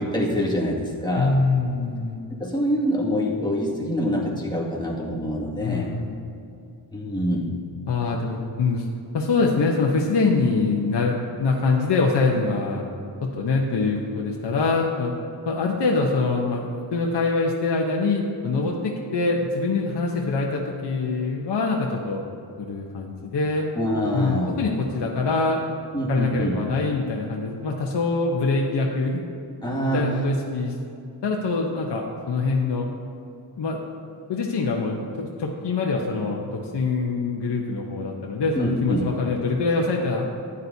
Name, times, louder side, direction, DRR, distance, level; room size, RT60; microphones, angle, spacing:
voice 1, 0.0-1.3 2.4-5.9 6.9-7.6 23.8-24.6 25.9-26.6 29.6-30.1 38.5-39.1, equal, 10° left, -5 dB, 2.1 m, -25 dB
voice 2, 1.2-2.2 5.6-6.2 7.9-8.9 9.1-12.8 13.2-15.1 15.5-16.6 16.9-22.2 22.6-23.7 24.1-25.6 26.1-29.2 29.9-30.7 31.2-32.9 33.6-33.9 34.3-40.3, left 3 dB, 70° left, -1 dB, 1.0 m, -24 dB
14.0 x 9.7 x 2.8 m, 2.6 s
wide cardioid pair, 90°, 43 cm